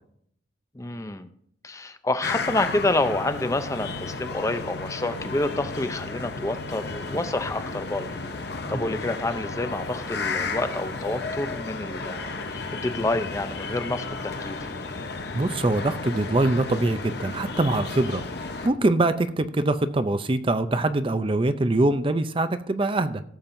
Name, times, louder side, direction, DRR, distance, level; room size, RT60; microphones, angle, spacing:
voice 1, 0.7-1.3 1.6-8.1 8.7-14.6, left 2 dB, 15° left, 10 dB, 0.6 m, -28 dB
sound 1, 2.2-18.7, left 3 dB, 60° left, 0.9 m, -33 dB
voice 2, 15.3-18.2 18.6-23.2, right 2 dB, 30° right, 11 dB, 0.5 m, -23 dB
16.0 x 7.3 x 2.6 m, 0.67 s
head